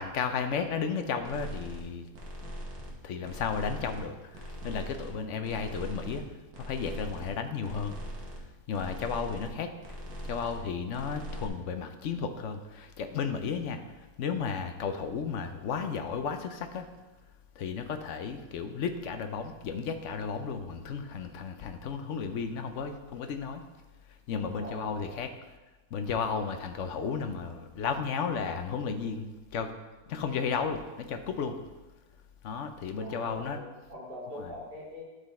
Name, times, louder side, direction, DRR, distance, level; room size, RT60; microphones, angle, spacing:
voice 1, 0.0-2.1 3.0-6.2 6.6-8.0 8.7-9.7 10.2-16.9 17.6-23.6 24.3-25.3 25.9-29.7 30.1-31.6 32.4-33.6 34.3-34.5, left 6 dB, 60° left, 7 dB, 0.8 m, -33 dB
sound 1, 1.2-1.8 2.1-3.0 3.2-4.1 4.3-5.2 5.4-6.2 6.5-7.3 7.6-8.4 8.7-9.5 9.8-10.6 10.9-11.5, equal, 70° right, 1.6 m, -41 dB
voice 2, 24.6-25.2 33.0-35.0, left 1 dB, 35° right, -4 dB, 2.0 m, -43 dB
11.0 x 3.9 x 4.2 m, 1.1 s
omnidirectional pair, 1.7 m